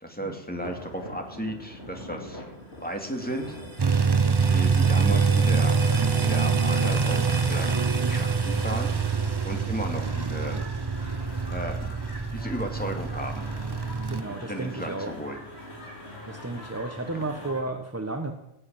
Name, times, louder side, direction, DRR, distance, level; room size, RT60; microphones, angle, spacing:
voice 1, 0.0-2.4 2.8-3.6 4.5-5.7 6.1-8.9 9.4-10.6 11.5-11.9 12.3-13.4 14.3-15.4 17.1-17.2, equal, 5° left, 2 dB, 2.5 m, -34 dB
sound 1, 0.5-17.6, left 1 dB, 60° left, 4.3 m, -42 dB
sound 2, 3.0-10.0, right 4 dB, 70° right, 2.2 m, -37 dB
sound 3, 3.8-14.2, right 5 dB, 30° right, 0.4 m, -25 dB
voice 2, 14.1-15.1 16.2-18.3, right 2 dB, 15° right, 5 dB, 1.1 m, -33 dB
17.5 x 9.1 x 9.0 m, 0.85 s
omnidirectional pair, 1.2 m